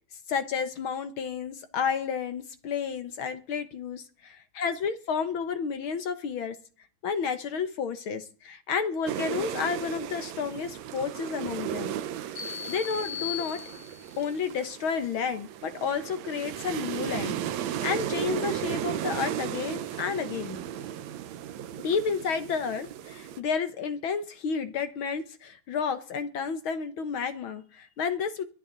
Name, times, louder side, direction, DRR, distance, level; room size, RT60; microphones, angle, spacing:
voice 1, 0.3-6.6 7.0-11.9 12.3-13.6 14.2-20.6 21.8-28.4, left 6 dB, 60° left, 10 dB, 1.4 m, -31 dB
sound 1, 9.1-23.4, right 10 dB, 70° right, 2.1 m, -35 dB
sound 2, 12.4-14.2, left 10 dB, 85° left, 6.9 m, -37 dB
23.0 x 10.0 x 4.0 m, 0.39 s
omnidirectional pair, 3.5 m